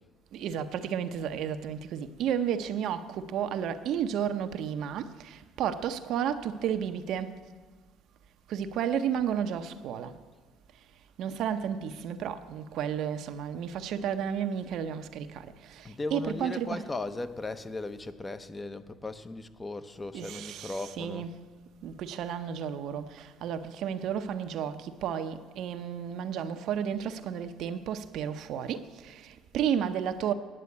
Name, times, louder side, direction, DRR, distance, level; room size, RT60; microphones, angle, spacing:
voice 1, 0.3-7.3 8.5-10.1 11.2-15.3 15.7-15.8 16.1-16.8 20.1-21.3 21.8-30.3, right 8 dB, 65° right, 0.6 m, -32 dB
voice 2, 15.8-21.3, left 2 dB, 25° left, 0.8 m, -37 dB
9.8 x 7.5 x 8.3 m
hypercardioid pair, 70°, 0 cm